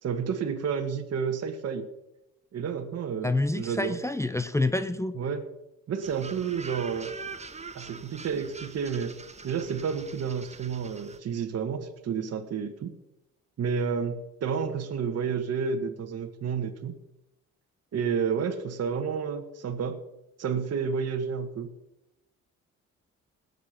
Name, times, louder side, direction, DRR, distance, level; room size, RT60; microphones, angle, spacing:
voice 1, 0.0-1.9 2.5-4.0 5.1-5.5 5.9-7.1 7.7-9.1 9.4-12.9 13.6-16.9 17.9-20.0 20.4-21.7, right 6 dB, 55° right, 5 dB, 1.4 m, -30 dB
voice 2, 3.2-5.1, left 2 dB, 10° left, 10 dB, 0.6 m, -27 dB
sound 1, 6.0-11.2, right 4 dB, 20° right, 1.0 m, -43 dB
18.0 x 6.9 x 5.9 m, 0.90 s
cardioid pair, 90°, 30 cm